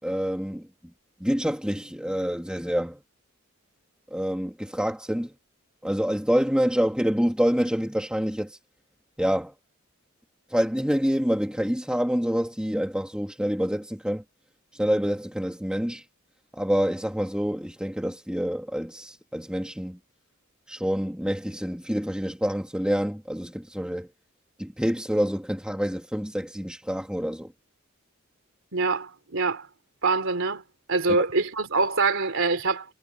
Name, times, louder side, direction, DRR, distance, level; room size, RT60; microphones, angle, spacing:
voice 1, 0.0-0.7 1.2-3.0 4.1-5.3 5.8-8.6 9.2-9.5 10.5-14.2 14.7-16.1 16.5-20.0 20.7-24.1 24.6-27.5, equal, 5° right, 2.7 m, -27 dB
voice 2, 28.7-29.7 30.0-30.6 30.9-32.9, right 3 dB, 65° right, 3.3 m, -24 dB
head